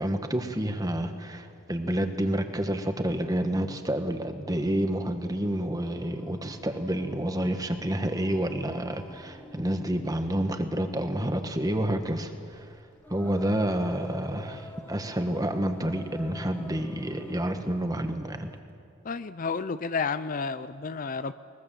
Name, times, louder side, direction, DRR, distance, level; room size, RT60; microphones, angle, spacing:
voice 1, 0.0-12.7 13.1-18.5, right 1 dB, 15° right, 7 dB, 1.3 m, -29 dB
Singing, 5.5-18.7, left 1 dB, 10° left, 1.2 m, -49 dB
voice 2, 19.0-21.3, left 5 dB, 40° left, 13 dB, 0.5 m, -31 dB
21.5 x 21.5 x 7.5 m, 2.4 s
head